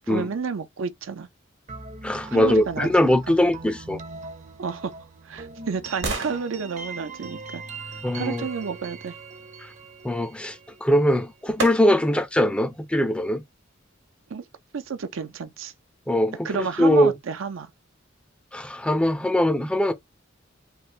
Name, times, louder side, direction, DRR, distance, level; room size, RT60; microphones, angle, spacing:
voice 1, 0.1-1.3 2.3-3.4 4.6-4.9 5.2-7.6 8.1-9.2 14.3-14.4 14.7-15.7 16.4-17.7, right 5 dB, 80° right, 0.5 m, -30 dB
sound 1, 1.7-11.4, right 4 dB, 40° right, 0.6 m, -41 dB
voice 2, 2.0-4.0 8.0-8.5 9.6-9.7 10.0-13.4 16.1-17.2 18.5-19.9, left 1 dB, 5° left, 0.4 m, -22 dB
sound 2, 4.7-8.6 10.7-10.8 11.6-12.3 12.8-12.9, right 3 dB, 65° right, 1.1 m, -36 dB
3.3 x 2.4 x 2.8 m
head